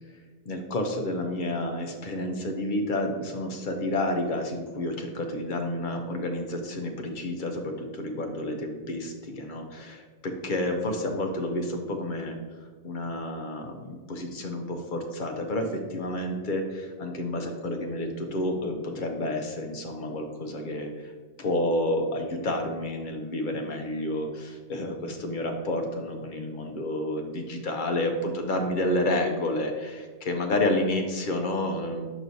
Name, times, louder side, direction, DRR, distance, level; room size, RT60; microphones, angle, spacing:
voice 1, 0.5-12.4 12.8-21.1 21.4-32.1, left 1 dB, 50° left, 3 dB, 0.9 m, -30 dB
6.0 x 6.0 x 2.7 m, 1.4 s
omnidirectional pair, 1.1 m